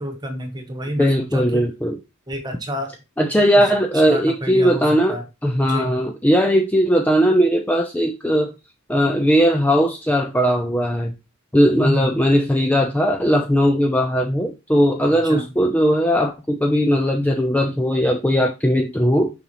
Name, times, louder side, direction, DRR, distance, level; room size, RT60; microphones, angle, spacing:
voice 1, 0.0-1.6 2.3-2.9 3.2-3.3 3.6-3.7 4.1-5.2 5.6-5.9 11.8-12.1 15.2-15.4, equal, 20° right, 5 dB, 1.4 m, -28 dB
voice 2, 1.0-2.0 3.2-8.5 8.9-11.1 11.5-19.3, equal, 5° left, 3 dB, 0.6 m, -18 dB
6.9 x 5.5 x 3.1 m, 0.26 s
head